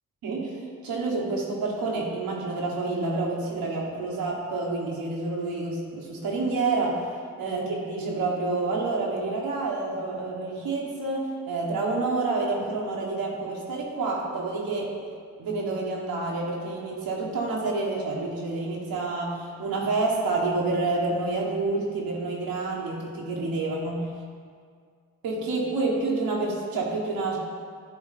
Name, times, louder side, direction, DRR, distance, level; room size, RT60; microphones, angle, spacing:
voice 1, 0.2-0.5 0.8-7.1 7.4-14.9 15.4-24.1 25.2-27.4, right 3 dB, 90° right, -3 dB, 1.2 m, -28 dB
9.3 x 3.2 x 4.1 m, 2.1 s
cardioid pair, 60°, 35 cm